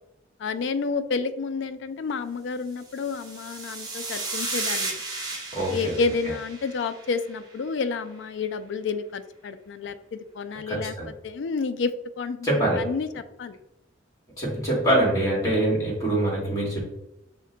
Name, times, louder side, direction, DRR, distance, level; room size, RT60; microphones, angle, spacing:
voice 1, 0.4-5.0 5.7-10.9 11.2-11.9 12.2-12.5 12.8-13.1 13.4-13.6, left 4 dB, 60° left, 10 dB, 0.3 m, -30 dB
sound 1, 2.9-7.4, right 3 dB, 20° right, 0.7 m, -34 dB
voice 2, 5.5-6.0 6.2-6.3 10.7-11.1 12.4-12.9 14.4-16.8, right 1 dB, 15° left, -4 dB, 1.7 m, -24 dB
6.1 x 2.2 x 3.8 m, 0.88 s
head